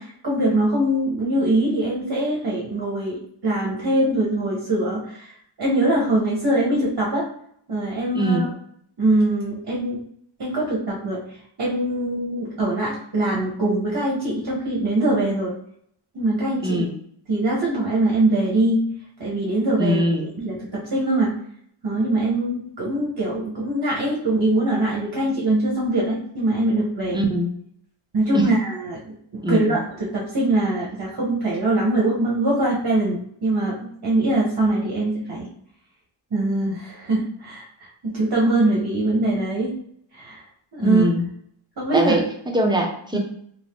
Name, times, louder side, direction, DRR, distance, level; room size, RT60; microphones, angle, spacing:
voice 1, 0.0-5.3 5.6-7.3 7.7-8.5 9.0-10.0 10.4-11.2 11.6-15.5 16.1-16.8 17.3-18.9 19.2-21.4 21.8-27.2 28.1-35.5 36.3-39.8 40.1-40.4 40.7-41.1 41.8-42.2 43.1-43.2, right 1 dB, 50° right, -4 dB, 0.8 m, -22 dB
voice 2, 8.1-8.5 16.6-16.9 19.8-20.3 27.1-27.5 28.3-28.6 29.4-29.8 40.8-41.2 41.9-43.2, right 1 dB, 10° right, 1 dB, 0.5 m, -22 dB
2.5 x 2.5 x 3.4 m, 0.68 s
wide cardioid pair, 60°, 49 cm